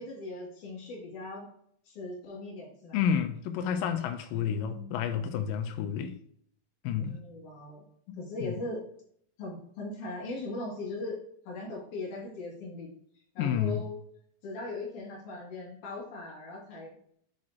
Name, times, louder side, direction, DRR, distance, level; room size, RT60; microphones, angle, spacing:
voice 1, 0.0-1.5 1.9-3.0 4.3-5.2 7.0-7.8 8.2-8.8 9.4-12.9 13.3-13.9 14.4-17.0, left 2 dB, 55° left, 3.5 m, -39 dB
voice 2, 2.9-6.2 6.8-7.2 8.1-8.5 13.4-13.8, left 8 dB, 85° left, 2.0 m, -30 dB
9.4 x 4.2 x 2.8 m
omnidirectional pair, 4.5 m